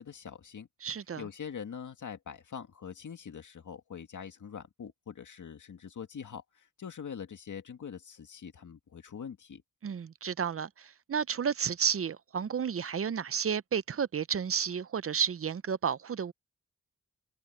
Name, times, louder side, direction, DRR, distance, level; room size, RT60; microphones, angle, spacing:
voice 1, 0.0-0.7 1.2-9.6, left 7 dB, 85° left, 2.1 m, -43 dB
voice 2, 0.8-1.2 9.8-16.3, right 7 dB, 50° right, 0.6 m, -32 dB
wide cardioid pair, 105°, 30 cm